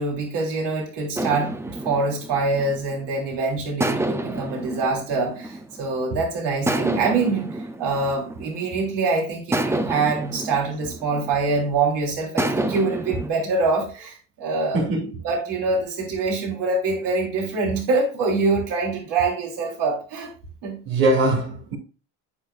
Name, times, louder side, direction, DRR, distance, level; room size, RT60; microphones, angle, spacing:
voice 1, 0.0-1.5 1.8-15.0 15.2-20.3 20.6-20.8, right 3 dB, 60° right, 3.4 m, -24 dB
sound 1, 1.1-3.2 3.8-6.1 6.7-8.9 9.5-11.7 12.4-13.3, right 1 dB, 5° right, 0.3 m, -29 dB
voice 2, 4.1-4.4 14.7-15.1 20.9-21.8, right 2 dB, 90° right, 2.6 m, -22 dB
8.3 x 6.0 x 2.4 m
supercardioid pair, 100°, 47 cm